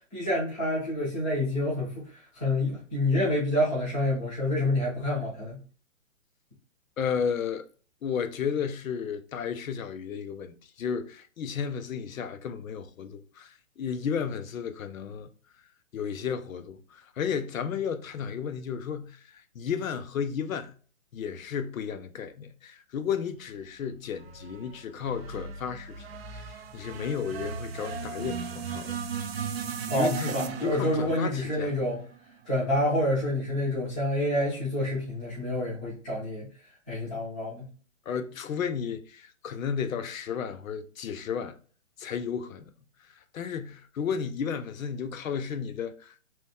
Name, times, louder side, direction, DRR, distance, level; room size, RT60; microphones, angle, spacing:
voice 1, 0.1-2.0 2.3-5.6 29.9-32.0 32.4-36.5 36.9-37.7, left 1 dB, 5° left, 0.5 m, -28 dB
voice 2, 7.0-7.7 8.0-15.3 15.9-20.7 21.1-26.1 26.3-29.0 29.9-31.7 38.1-41.6 42.0-42.6 43.3-46.3, left 7 dB, 85° left, 0.6 m, -33 dB
sound 1, 24.2-32.5, right 6 dB, 50° right, 0.4 m, -37 dB
2.9 x 2.3 x 3.3 m
hypercardioid pair, 165°, 40 cm